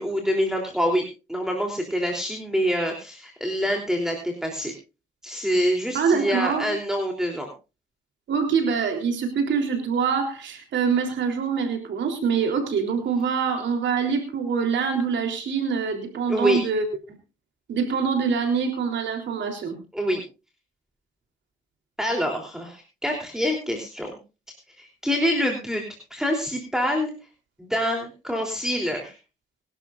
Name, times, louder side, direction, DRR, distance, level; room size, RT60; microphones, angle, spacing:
voice 1, 0.0-4.7 5.2-7.5 16.3-16.6 19.9-20.2 22.0-24.2 24.8-25.8 26.1-27.1 27.6-29.1, equal, 5° right, 2 dB, 3.3 m, -26 dB
voice 2, 5.9-6.7 8.3-16.9 17.7-19.8, right 6 dB, 65° right, 4 dB, 3.6 m, -24 dB
24.0 x 12.0 x 2.5 m, 0.31 s
cardioid pair, 90°, 20 cm